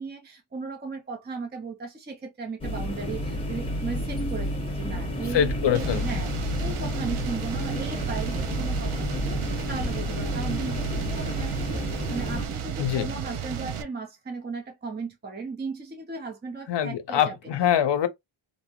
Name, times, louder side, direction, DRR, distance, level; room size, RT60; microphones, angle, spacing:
voice 1, 0.0-6.3 6.6-17.4, right 4 dB, 20° right, 0.6 m, -36 dB
sound 1, 2.6-12.5, equal, 10° left, 0.9 m, -30 dB
voice 2, 5.3-6.0 12.8-13.1 16.7-18.1, left 10 dB, 60° left, 0.6 m, -24 dB
sound 2, 5.7-13.8, right 7 dB, 80° right, 0.6 m, -33 dB
2.6 x 2.0 x 2.9 m
cardioid pair, 95°, 49 cm